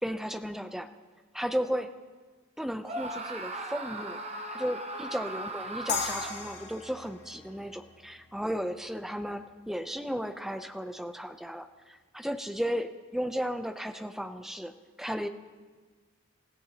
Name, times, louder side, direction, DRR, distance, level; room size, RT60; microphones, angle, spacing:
voice 1, 0.0-0.9 1.3-1.9 2.6-4.2 4.5-14.7 15.0-15.3, equal, ahead, 8 dB, 0.6 m, -34 dB
Screaming, 2.8-6.6, right 1 dB, 30° right, 1.0 m, -38 dB
sound 1, 5.9-9.0, left 5 dB, 55° left, 1.7 m, -37 dB
28.0 x 15.0 x 2.9 m, 1.5 s
head